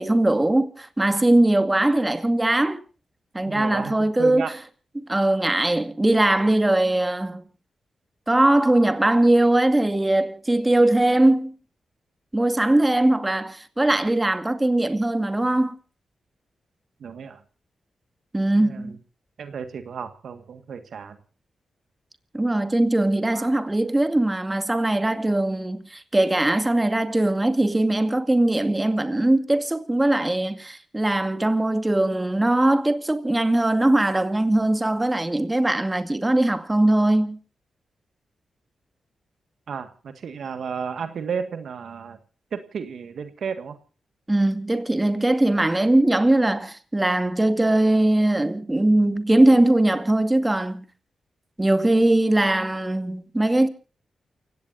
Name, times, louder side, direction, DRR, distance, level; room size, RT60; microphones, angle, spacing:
voice 1, 0.0-2.8 3.3-4.5 5.0-7.4 8.3-11.5 12.3-15.8 18.3-19.0 22.3-37.4 44.3-50.8 51.6-53.7, right 1 dB, 20° right, 2.2 m, -20 dB
voice 2, 3.5-4.5 17.0-17.4 18.6-18.9 19.4-21.2 23.3-23.5 39.7-42.2 42.5-43.8, right 6 dB, 75° right, 1.7 m, -33 dB
29.0 x 17.0 x 2.7 m
supercardioid pair, 45°, 0 cm